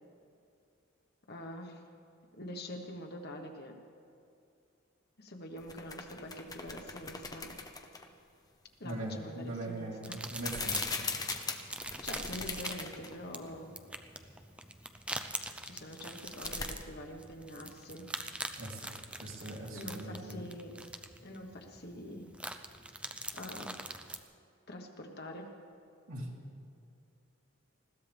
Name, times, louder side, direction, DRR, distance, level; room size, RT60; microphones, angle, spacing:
voice 1, 1.3-1.8 2.4-3.7 5.2-7.5 8.8-10.2 12.0-13.8 15.6-18.1 19.7-20.8 21.2-22.3 23.3-23.8 24.7-25.5, left 1 dB, 50° left, 3 dB, 1.4 m, -45 dB
sound 1, 5.6-8.1 10.3-13.1 13.5-13.6 16.1-16.7, left 4 dB, 20° left, 0.8 m, -39 dB
voice 2, 8.8-11.1 18.6-18.9 19.2-20.4 26.1-26.3, right 1 dB, 80° right, -4 dB, 3.4 m, -41 dB
sound 2, 10.0-24.2, right 1 dB, 5° right, 0.5 m, -44 dB
20.5 x 15.5 x 3.6 m, 2.5 s
head